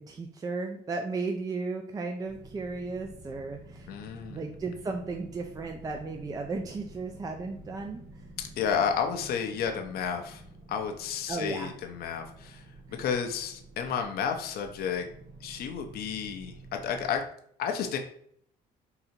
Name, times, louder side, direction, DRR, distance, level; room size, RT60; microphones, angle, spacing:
voice 1, 0.0-3.9 4.3-8.0 11.3-11.7 12.9-13.0, right 3 dB, 20° right, 3 dB, 0.4 m, -35 dB
sound 1, 2.2-17.2, right 1 dB, 80° right, 1.5 m, -50 dB
voice 2, 3.9-4.4 8.4-10.4 10.7-15.1 15.4-16.5 16.8-17.2 17.6-18.0, left 7 dB, 65° left, 4 dB, 0.6 m, -31 dB
3.9 x 2.8 x 4.3 m, 0.65 s
cardioid pair, 110°, 17 cm